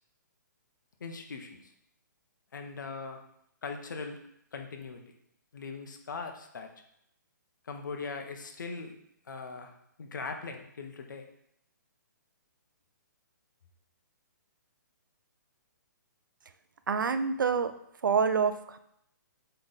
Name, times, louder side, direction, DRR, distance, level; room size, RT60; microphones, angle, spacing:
voice 1, 1.0-1.7 2.5-3.2 3.6-4.2 4.5-5.0 5.5-6.7 7.6-8.9 9.3-9.7 10.0-11.2, left 4 dB, 70° left, 4 dB, 1.1 m, -40 dB
voice 2, 16.9-17.7 18.0-18.8, right 6 dB, 85° right, 11 dB, 0.6 m, -27 dB
8.1 x 3.4 x 4.1 m, 0.75 s
hypercardioid pair, 165°, 10 cm